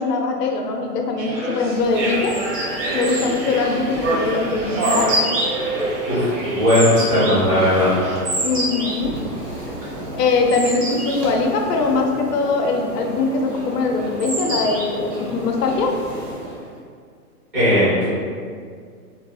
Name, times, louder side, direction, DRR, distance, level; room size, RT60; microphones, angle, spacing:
voice 1, 0.0-2.4 2.9-5.2 8.4-9.2 10.1-16.0, left 3 dB, 85° left, 2 dB, 0.6 m, -21 dB
sound 1, 1.2-8.2, right 2 dB, 50° right, 0.8 m, -27 dB
sound 2, 1.7-16.7, right 1 dB, 80° right, 1.1 m, -29 dB
voice 2, 6.1-7.9 17.5-18.1, left 1 dB, 10° right, -16 dB, 0.4 m, -17 dB
2.4 x 2.3 x 2.7 m, 2.1 s
hypercardioid pair, 155°, 46 cm